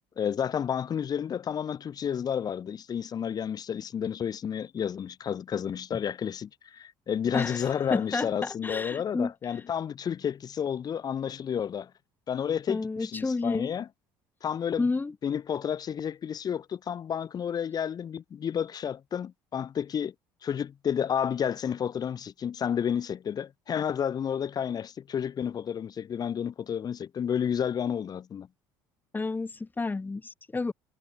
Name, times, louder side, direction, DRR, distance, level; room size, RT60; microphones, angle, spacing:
voice 1, 0.2-11.9 12.3-13.9 14.4-14.9 15.2-20.1 20.4-28.5, left 8 dB, 45° left, 5.3 m, -31 dB
voice 2, 7.3-9.6 12.7-13.7 14.8-15.1 29.1-30.7, left 3 dB, 20° left, 3.7 m, -31 dB
supercardioid pair, 80°, 9 cm